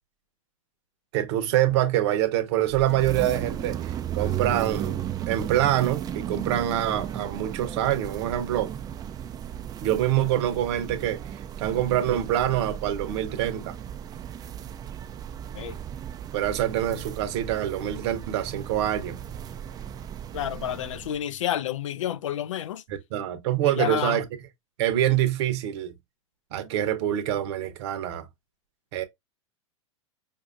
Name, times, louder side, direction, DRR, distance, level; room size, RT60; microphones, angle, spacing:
voice 1, 1.1-8.7 9.8-13.8 16.3-19.2 22.9-24.2 24.8-25.9 26.5-28.3 28.9-29.0, right 12 dB, 55° right, 0.9 m, -25 dB
sound 1, 2.6-21.2, right 10 dB, 25° right, 0.4 m, -35 dB
voice 2, 20.3-22.8 23.6-24.2, left 11 dB, 70° left, 0.4 m, -30 dB
5.0 x 2.6 x 2.5 m
figure-of-eight pair, 95°, 17 cm